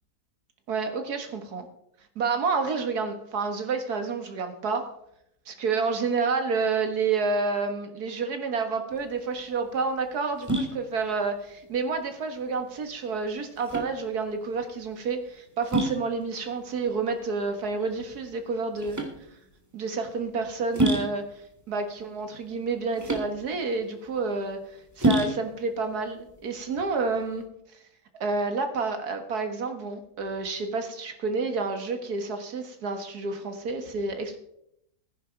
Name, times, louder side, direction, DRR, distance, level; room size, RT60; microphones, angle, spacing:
voice 1, 0.7-1.7 2.2-4.9 5.5-19.0 19.7-21.2 21.7-24.6 25.0-27.4 28.2-34.4, right 4 dB, 85° right, 7 dB, 2.1 m, -29 dB
sound 1, 8.9-27.4, right 1 dB, 10° right, 2.1 m, -31 dB
14.5 x 10.5 x 4.6 m, 0.75 s
omnidirectional pair, 1.6 m